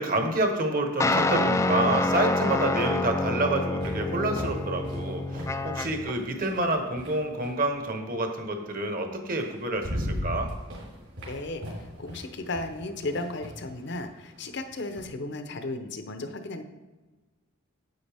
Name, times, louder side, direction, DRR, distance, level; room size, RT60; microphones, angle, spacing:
voice 1, 0.0-10.5, right 2 dB, 40° right, 5 dB, 1.1 m, -28 dB
sound 1, 1.0-6.2, left 2 dB, 15° left, 0.3 m, -27 dB
sound 2, 3.2-7.7 9.0-9.1 9.5-15.1, equal, 65° right, 3.3 m, -38 dB
voice 2, 11.3-11.6 12.0-16.6, left 2 dB, 55° left, 7 dB, 0.8 m, -34 dB
9.5 x 8.2 x 3.5 m, 1.2 s
head